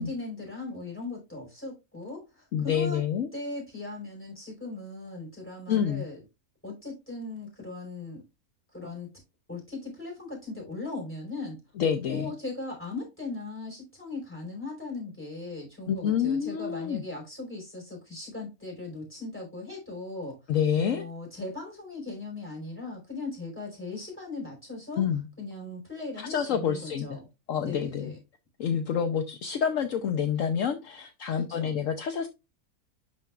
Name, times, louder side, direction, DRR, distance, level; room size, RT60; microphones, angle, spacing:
voice 1, 0.0-3.0 3.3-6.2 6.6-8.2 8.7-9.1 9.5-11.6 12.0-20.4 20.7-25.0 25.4-27.3 27.6-28.2 31.3-31.7, left 3 dB, 10° left, -1 dB, 4.7 m, -38 dB
voice 2, 2.5-3.3 5.7-6.0 11.8-12.3 15.9-17.0 20.5-21.0 25.0-25.3 26.2-27.1 27.5-28.1 28.6-32.3, left 8 dB, 65° left, 7 dB, 1.0 m, -28 dB
11.5 x 4.6 x 2.4 m, 0.24 s
omnidirectional pair, 1.6 m